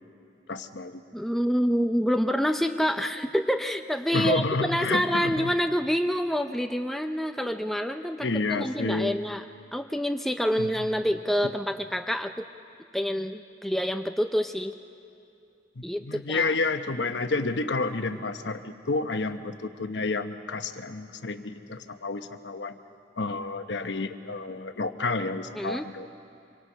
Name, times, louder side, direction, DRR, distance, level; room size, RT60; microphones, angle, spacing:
voice 1, 0.5-1.0 4.1-5.5 8.2-9.1 10.6-10.7 15.8-22.8 23.2-26.2, left 3 dB, 70° left, 8 dB, 1.1 m, -30 dB
voice 2, 1.1-9.4 9.7-12.4 12.9-14.7 15.8-16.5 25.6-25.9, equal, ahead, 5 dB, 0.5 m, -27 dB
26.0 x 25.0 x 5.7 m, 2.6 s
head